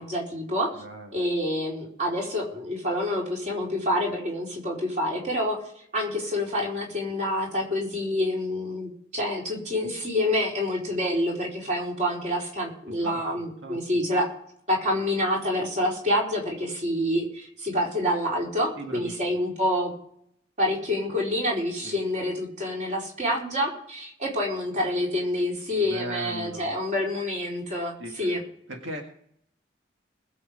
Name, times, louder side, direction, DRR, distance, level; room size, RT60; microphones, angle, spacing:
voice 1, 0.0-0.8 1.1-5.6 5.9-14.3 14.7-19.9 20.6-28.4, left 1 dB, 40° right, -2 dB, 4.5 m, -27 dB
voice 2, 0.8-1.2 12.9-13.2 13.6-13.8 18.8-19.4 21.8-22.0 25.8-26.8 28.0-28.4 28.7-29.0, right 1 dB, 90° right, 2 dB, 1.9 m, -38 dB
20.5 x 7.7 x 5.1 m, 0.67 s
head